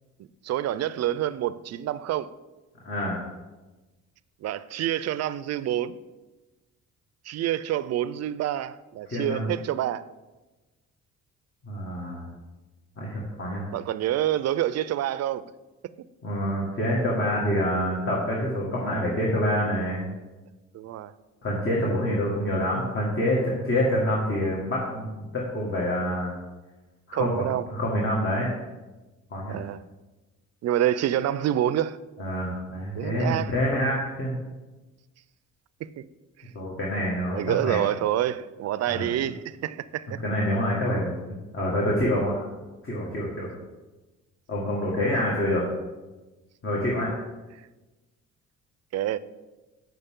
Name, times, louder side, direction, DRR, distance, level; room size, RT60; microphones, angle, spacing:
voice 1, 0.4-2.3 4.4-6.0 7.3-10.1 13.7-15.4 20.7-21.1 27.1-27.6 29.5-29.8 30.6-32.0 32.9-33.5 35.8-36.1 37.3-40.2 48.9-49.2, right 12 dB, 60° right, 0.4 m, -27 dB
voice 2, 2.8-3.2 9.1-9.5 11.6-12.3 13.0-13.6 16.2-20.0 21.4-26.3 27.1-28.5 29.3-29.6 32.2-34.3 36.6-37.8 38.9-39.1 40.2-42.5 42.8-43.5 44.5-45.7 46.6-47.1, equal, 45° left, 1.9 m, -27 dB
7.6 x 6.8 x 3.7 m
cardioid pair, 90°, 30 cm